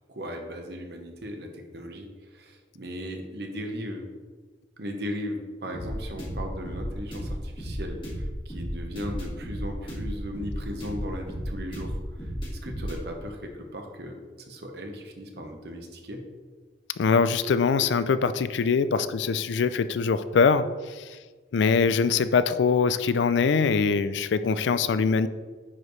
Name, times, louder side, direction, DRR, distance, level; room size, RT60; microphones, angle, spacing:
voice 1, 0.1-4.0 4.8-16.2, equal, 65° right, 3 dB, 1.1 m, -37 dB
sound 1, 5.7-13.0, equal, 30° left, 2.1 m, -33 dB
voice 2, 17.0-21.2 21.5-25.3, left 5 dB, 90° left, 13 dB, 0.4 m, -23 dB
9.7 x 4.9 x 3.2 m, 1.4 s
head